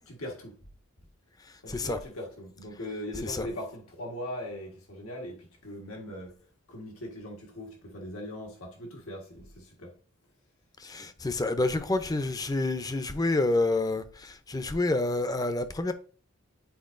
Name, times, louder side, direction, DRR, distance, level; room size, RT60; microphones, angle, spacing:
voice 1, 0.1-0.5 1.6-6.4 6.7-10.0 11.0-11.1, left 1 dB, 90° left, 1.5 m, -40 dB
voice 2, 1.7-2.0 3.2-3.5 10.8-15.9, left 2 dB, 20° left, 0.5 m, -28 dB
9.4 x 4.5 x 2.5 m
head